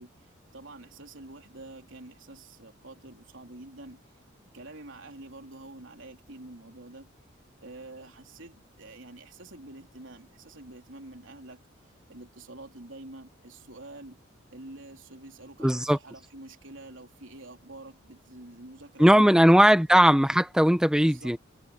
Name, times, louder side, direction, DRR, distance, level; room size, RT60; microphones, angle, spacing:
voice 1, 0.0-4.0 4.5-7.1 7.6-11.6 12.1-14.2 14.5-19.8 20.9-21.4, right 2 dB, 75° right, 3.6 m, -47 dB
voice 2, 15.6-16.0 19.0-21.4, equal, 5° right, 0.7 m, -19 dB
head